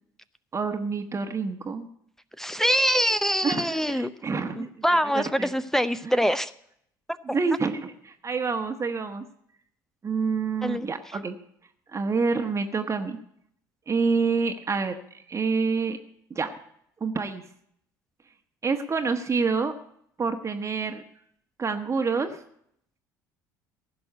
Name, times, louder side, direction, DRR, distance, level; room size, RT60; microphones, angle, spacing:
voice 1, 0.5-1.9 3.4-4.7 5.1-5.5 6.0-6.2 7.2-9.2 10.0-11.4 11.9-13.2 13.9-14.9 15.3-16.0 16.3-16.5 17.0-17.4 18.6-19.7 20.2-21.0 21.6-22.4, right 4 dB, 30° right, 6 dB, 1.2 m, -27 dB
voice 2, 2.4-4.1 4.6-6.5 7.3-7.4 10.6-10.9, equal, 5° left, 14 dB, 0.7 m, -24 dB
16.0 x 6.2 x 9.9 m, 0.71 s
figure-of-eight pair, 60°, 10 cm